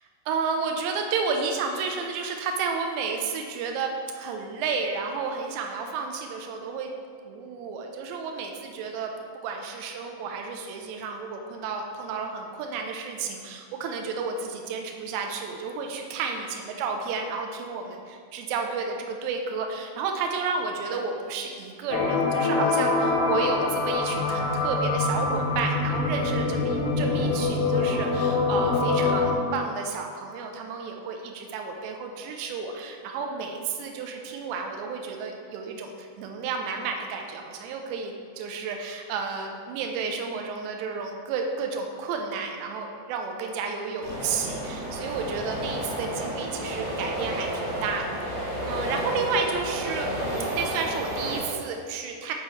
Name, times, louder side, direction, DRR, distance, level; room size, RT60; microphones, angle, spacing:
voice 1, 0.3-6.9 7.3-9.1 9.4-52.3, right 5 dB, 80° right, 3 dB, 2.7 m, -31 dB
sound 1, 21.9-29.3, left 3 dB, 90° left, 2.9 m, -25 dB
sound 2, 44.0-51.4, equal, 65° right, 1.7 m, -31 dB
6.3 x 5.4 x 3.1 m, 2.1 s
omnidirectional pair, 5.2 m